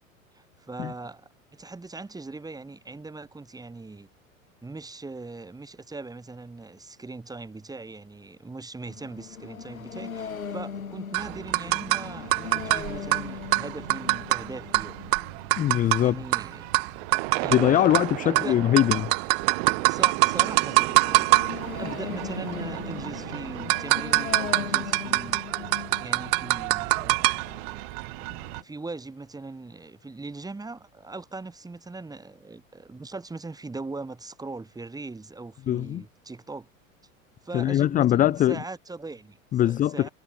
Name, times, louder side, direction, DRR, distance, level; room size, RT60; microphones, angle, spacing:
voice 1, 0.3-4.1 4.6-15.0 16.0-16.6 17.3-17.8 18.2-18.6 19.9-21.3 21.8-25.4 26.0-27.4 28.6-36.7 37.4-39.4 39.6-40.1, right 3 dB, 10° right, 2.4 m, -40 dB
sound 1, 8.8-28.6, left 6 dB, 80° left, 2.5 m, -40 dB
sound 2, 11.1-28.6, right 36 dB, 45° right, 1.3 m, -26 dB
voice 2, 15.6-16.2 17.4-19.1 35.7-36.0 37.5-38.6 39.5-40.1, left 12 dB, 20° left, 0.6 m, -22 dB
figure-of-eight pair, 85°, 41 cm